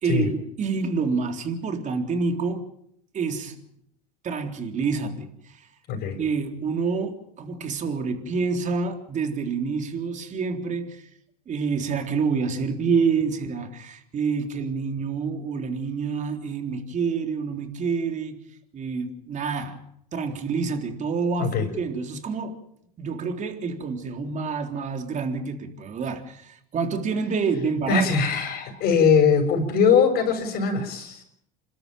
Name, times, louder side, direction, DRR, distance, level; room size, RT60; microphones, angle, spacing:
voice 1, 0.0-2.6 3.1-3.6 4.2-5.6 6.2-11.0 11.5-18.4 18.7-19.8 20.1-22.6 23.0-28.1, right 5 dB, 40° right, 3.7 m, -27 dB
voice 2, 5.9-6.2 21.4-21.7 27.9-31.2, left 6 dB, 55° left, 6.1 m, -21 dB
27.5 x 13.0 x 9.2 m
supercardioid pair, 95°, 20 cm